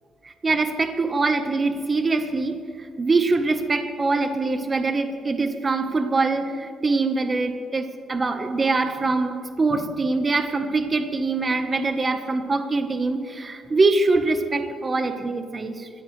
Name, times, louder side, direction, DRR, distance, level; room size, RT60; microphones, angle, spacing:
voice 1, 0.2-9.3 9.6-15.9, right 3 dB, 30° right, 6 dB, 1.3 m, -23 dB
26.0 x 14.0 x 3.3 m, 2.2 s
cardioid pair, 90°, 0 cm